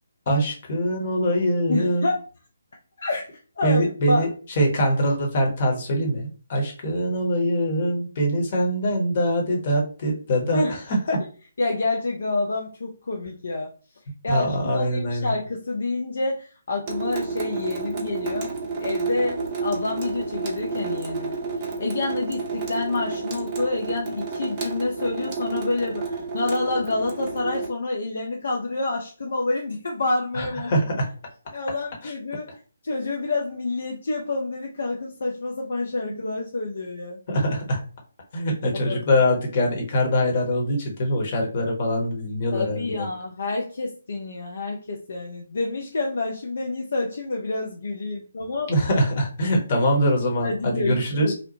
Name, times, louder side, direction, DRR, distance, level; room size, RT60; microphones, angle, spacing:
voice 1, 0.3-2.1 3.6-4.3 4.6-11.2 14.3-15.3 30.3-31.1 32.0-32.1 36.1-36.2 37.3-37.8 38.3-43.1 48.7-51.3, equal, 40° left, 1 dB, 0.9 m, -23 dB
voice 2, 1.7-2.2 3.0-3.3 3.6-4.3 10.5-10.8 11.6-13.7 14.2-21.4 21.8-30.7 31.5-32.5 32.8-37.2 38.7-39.0 42.5-48.7 50.4-51.3, left 2 dB, 55° left, 0 dB, 0.4 m, -28 dB
Water tap faucet / Sink (filling or washing) / Drip, 16.9-27.7, right 4 dB, 25° right, 0.5 m, -30 dB
2.7 x 2.0 x 2.9 m, 0.38 s
figure-of-eight pair, 140°, 0 cm